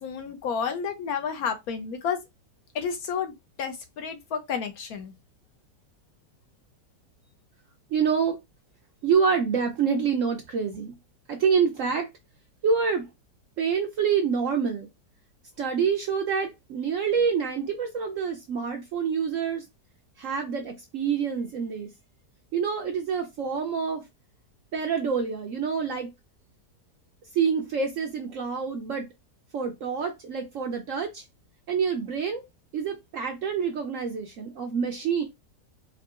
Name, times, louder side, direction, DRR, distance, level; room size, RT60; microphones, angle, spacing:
voice 1, 0.0-2.2 2.7-5.1, left 6 dB, 70° left, 1.0 m, -31 dB
voice 2, 7.9-8.4 9.0-10.9 11.3-12.1 12.6-13.1 13.6-14.9 15.6-19.6 20.2-21.9 22.5-24.0 24.7-26.1 27.3-29.1 29.5-31.2 31.7-32.4 32.7-35.2, right 6 dB, 65° right, 0.8 m, -27 dB
4.6 x 2.6 x 2.4 m
omnidirectional pair, 1.8 m